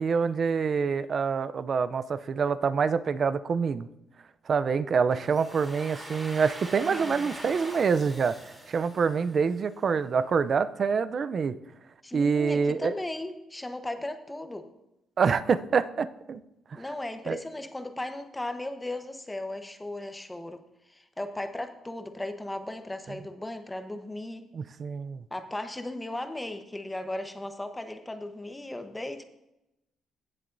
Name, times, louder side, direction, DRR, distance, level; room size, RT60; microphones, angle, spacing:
voice 1, 0.0-3.9 4.5-8.4 8.7-11.5 12.1-12.9 15.2-16.4 16.7-16.8 17.3-17.4 24.5-25.2, right 5 dB, 50° right, 13 dB, 0.5 m, -26 dB
Domestic sounds home sounds, 5.1-9.9, right 1 dB, 10° right, 3.1 m, -43 dB
voice 2, 6.9-7.3 12.0-14.7 16.7-20.6 20.9-24.4 25.3-29.2, left 1 dB, 10° left, 8 dB, 1.0 m, -36 dB
16.5 x 7.5 x 2.6 m, 0.89 s
cardioid pair, 90°, 0 cm